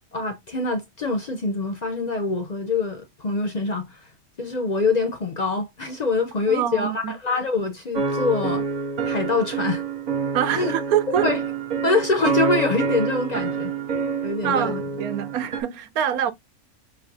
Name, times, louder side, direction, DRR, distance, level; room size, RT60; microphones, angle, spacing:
voice 1, 0.1-4.0 4.4-8.7 9.1-9.8 10.6-10.7 11.1-11.4 11.8-13.7 14.2-14.8, left 3 dB, 55° left, 0.4 m, -25 dB
voice 2, 6.5-7.1 10.3-11.3 14.4-16.3, right 10 dB, 90° right, 1.1 m, -25 dB
sound 1, 7.9-15.6, right 5 dB, 50° right, 0.5 m, -27 dB
5.4 x 3.2 x 2.6 m
omnidirectional pair, 1.5 m